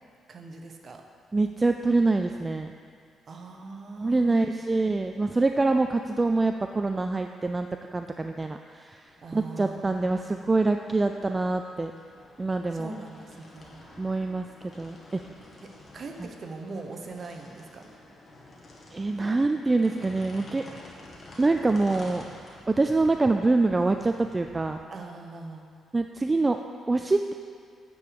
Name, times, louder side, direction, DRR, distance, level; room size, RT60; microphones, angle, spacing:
voice 1, 0.3-1.0 3.3-4.5 9.2-10.5 12.7-13.8 15.6-17.9 24.9-25.7, right 3 dB, 45° right, 3 dB, 1.0 m, -41 dB
voice 2, 1.3-2.7 4.0-11.9 12.4-12.9 14.0-14.5 14.8-15.2 16.2-16.3 18.9-20.7 21.4-22.3 22.7-24.8 25.9-27.3, right 3 dB, 20° right, 6 dB, 0.3 m, -25 dB
sound 1, 9.1-24.8, left 2 dB, 40° left, 1.8 m, -50 dB
9.5 x 4.7 x 6.9 m, 2.3 s
cardioid pair, 90°, 0 cm